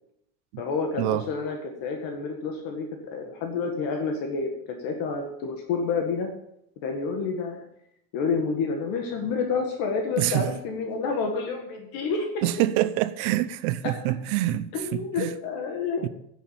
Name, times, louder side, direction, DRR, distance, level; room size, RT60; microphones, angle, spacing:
voice 1, 0.6-4.5 4.8-6.3 6.8-7.7 8.1-12.4 14.7-16.1, left 4 dB, 45° left, 1.9 m, -29 dB
voice 2, 10.2-10.5 12.4-15.3 16.0-16.1, right 14 dB, 65° right, 0.9 m, -26 dB
10.5 x 8.3 x 7.1 m
cardioid pair, 165°, 47 cm